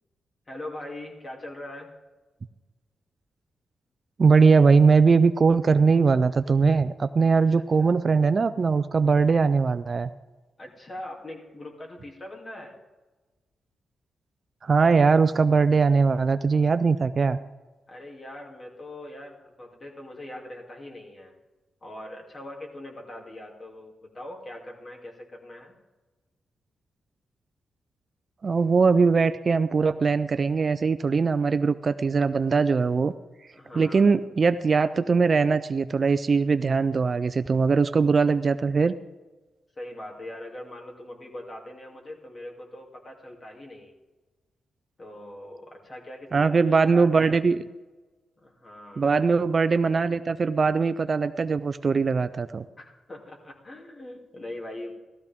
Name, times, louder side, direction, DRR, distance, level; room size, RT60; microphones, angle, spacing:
voice 1, 0.5-1.9 7.5-7.9 10.6-12.8 17.9-21.3 21.8-25.7 33.5-34.1 39.7-43.9 45.0-47.4 48.4-49.1 52.8-54.9, left 1 dB, 30° left, 0 dB, 2.7 m, -41 dB
voice 2, 4.2-10.1 14.6-17.4 28.4-33.1 33.8-38.9 46.3-47.6 49.0-52.6, right 5 dB, 40° right, 12 dB, 0.4 m, -21 dB
16.0 x 13.5 x 3.6 m, 1.2 s
cardioid pair, 110°, 0 cm